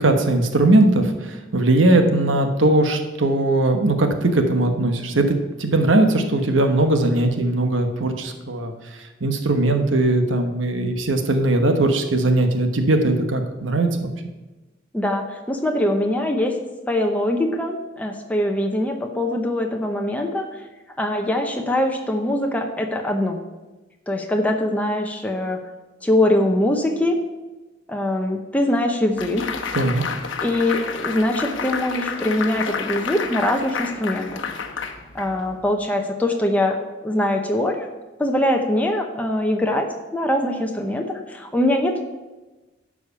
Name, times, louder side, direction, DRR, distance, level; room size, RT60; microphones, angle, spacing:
voice 1, 0.0-8.7 9.2-14.1 29.7-30.0, right 2 dB, 80° right, 6 dB, 1.2 m, -19 dB
voice 2, 14.9-16.6 16.9-20.5 21.0-23.4 24.1-25.6 26.0-27.2 27.9-29.5 30.4-34.5 35.1-37.9 38.2-42.0, left 1 dB, 10° left, 2 dB, 0.8 m, -22 dB
sound 1, 29.2-35.6, left 5 dB, 75° left, 1.0 m, -30 dB
11.5 x 4.9 x 6.9 m, 1.1 s
head